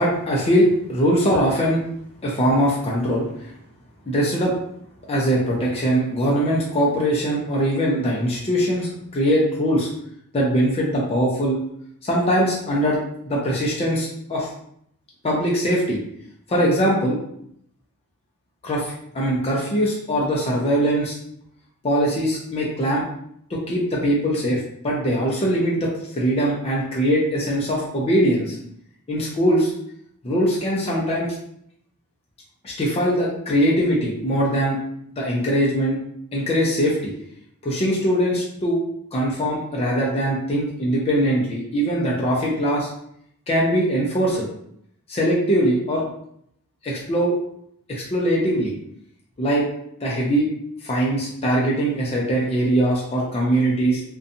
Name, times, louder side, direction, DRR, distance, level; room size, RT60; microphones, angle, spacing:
voice 1, 0.0-1.8 2.2-3.2 4.1-4.5 5.1-9.9 10.3-11.6 12.0-13.0 13.3-14.5 15.2-16.0 16.5-17.2 18.6-21.1 21.8-23.0 23.5-25.9 26.2-28.6 29.1-29.7 30.2-31.3 32.6-34.8 35.2-36.0 36.3-37.1 37.6-38.8 39.1-42.9 43.5-44.5 45.1-46.0 46.8-47.3 47.9-48.7 49.4-49.6 50.0-50.5 50.8-54.0, equal, 25° left, -4 dB, 0.4 m, -21 dB
2.6 x 2.2 x 2.6 m, 0.71 s
head